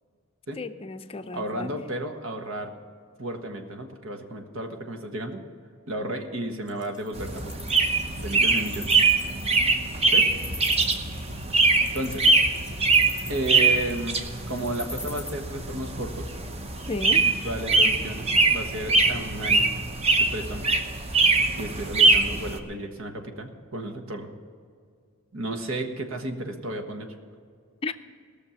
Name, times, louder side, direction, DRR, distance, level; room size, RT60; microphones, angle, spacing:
voice 1, 0.6-1.7 16.9-17.2 27.8-27.9, left 3 dB, 30° left, 9 dB, 0.5 m, -33 dB
voice 2, 1.3-2.7 3.2-5.4 5.9-7.8 8.2-8.9 10.1-10.4 11.9-12.3 13.3-16.3 17.1-19.7 20.2-20.7 21.6-24.3 25.3-27.1, right 1 dB, 80° right, 5 dB, 1.4 m, -33 dB
Wild animals, 6.7-15.3, left 2 dB, 5° right, 2.3 m, -41 dB
sound 1, 7.1-22.6, right 3 dB, 30° right, 0.9 m, -23 dB
18.0 x 6.6 x 7.0 m, 2.1 s
head